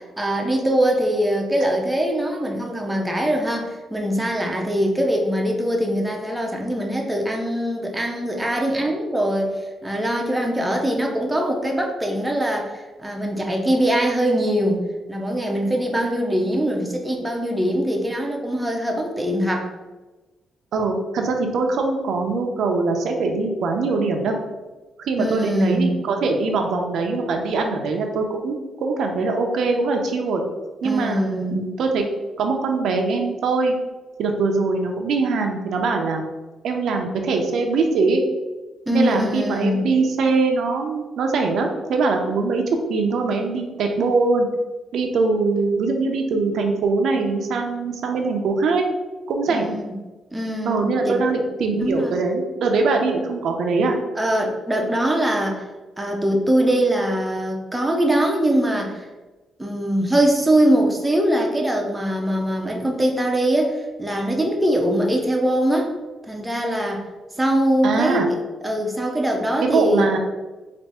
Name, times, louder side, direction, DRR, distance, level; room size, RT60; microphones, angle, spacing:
voice 1, 0.0-9.5 9.8-14.8 15.1-19.7 25.2-25.9 30.8-31.7 38.9-39.9 49.5-49.9 50.3-51.5 51.8-52.2 54.2-55.6 56.0-59.1 59.6-66.0 66.3-67.0 67.4-68.4 68.6-70.1, right 1 dB, 10° right, 0 dB, 0.5 m, -22 dB
voice 2, 20.7-24.4 25.0-30.4 30.8-32.1 32.4-33.8 34.2-36.2 36.6-38.2 38.9-42.6 42.9-44.5 44.9-48.9 49.3-49.7 50.6-53.9 67.8-68.3 69.6-70.2, right 3 dB, 70° right, 3 dB, 0.5 m, -22 dB
3.4 x 2.5 x 4.1 m, 1.2 s
cardioid pair, 145°, 0 cm